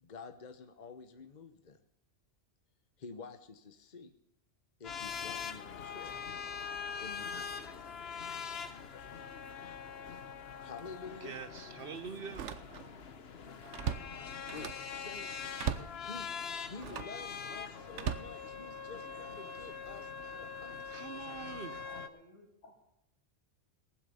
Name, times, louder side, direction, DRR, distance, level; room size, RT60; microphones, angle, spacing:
voice 1, 0.0-1.8 3.0-4.1 4.8-6.2 7.0-7.9 10.6-11.4 14.5-15.4 15.8-16.3 16.7-21.1, left 4 dB, 40° left, 1.1 m, -49 dB
sound 1, 4.8-22.1, left 6 dB, 65° left, 1.2 m, -43 dB
Slam, 10.1-10.3 10.8-10.9 12.2-13.0 13.4-14.9 15.6-16.0 16.8-17.2 17.9-19.0 19.6-19.9, right 8 dB, 85° right, 1.2 m, -39 dB
voice 2, 11.2-12.5 20.7-21.8, right 6 dB, 55° right, 1.1 m, -45 dB
voice 3, 21.9-22.8, left 1 dB, 90° left, 3.6 m, -56 dB
18.5 x 7.9 x 6.9 m
omnidirectional pair, 1.2 m